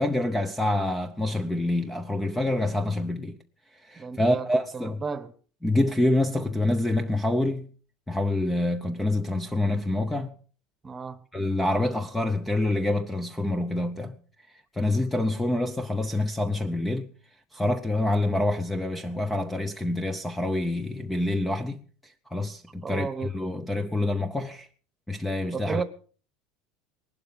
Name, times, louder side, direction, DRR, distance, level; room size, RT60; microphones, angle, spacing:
voice 1, 0.0-3.4 3.8-5.0 5.6-7.7 8.1-10.3 11.3-14.2 14.5-17.1 17.5-24.7 25.1-25.8, left 1 dB, 5° left, 0.7 m, -27 dB
voice 2, 4.0-4.5 4.7-5.3 10.8-11.2 22.8-23.3 25.5-25.8, right 5 dB, 15° right, 1.1 m, -33 dB
19.0 x 12.0 x 5.3 m
cardioid pair, 165°, 0 cm